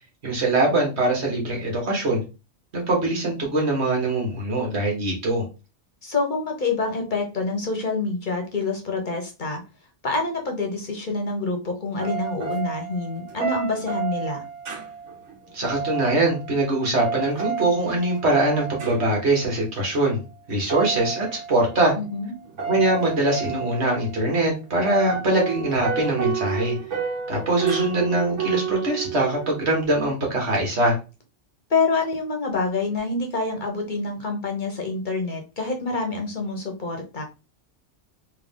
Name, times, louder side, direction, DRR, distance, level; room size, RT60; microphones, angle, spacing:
voice 1, 0.2-2.2 2.7-5.5 15.5-20.2 20.5-21.9 22.6-26.8 27.3-31.0, right 2 dB, 65° right, 0 dB, 1.7 m, -22 dB
voice 2, 6.0-9.6 10.0-14.4 22.0-22.3 31.7-37.2, left 3 dB, 45° left, 2 dB, 0.9 m, -27 dB
sound 1, 12.0-19.3 20.7-21.8 22.5-24.2 24.8-29.8, right 6 dB, 85° right, 1.3 m, -31 dB
3.7 x 2.7 x 3.5 m, 0.30 s
omnidirectional pair, 1.2 m